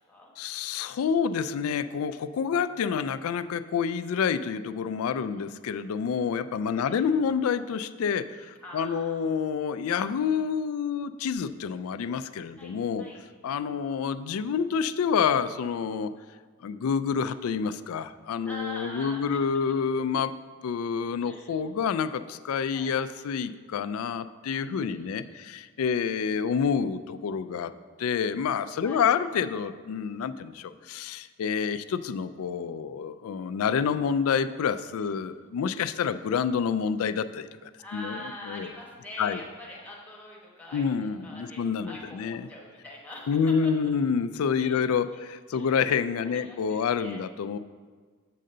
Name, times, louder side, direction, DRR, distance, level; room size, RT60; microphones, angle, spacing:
voice 1, 0.4-13.1 13.4-16.1 16.6-20.3 20.6-27.7 28.0-38.2 38.4-38.7 39.2-39.4 40.7-42.5 43.3-47.6, left 6 dB, 80° left, 13 dB, 0.3 m, -28 dB
voice 2, 5.0-5.4 6.7-7.0 8.6-9.3 12.6-13.2 18.4-19.6 21.2-21.6 22.7-22.9 24.6-25.4 28.8-29.1 35.0-35.1 37.8-43.9 44.6-44.8 45.1-45.2 45.5-45.7 46.2-47.2, left 1 dB, 5° left, -4 dB, 1.1 m, -44 dB
7.5 x 3.8 x 6.5 m, 1.5 s
head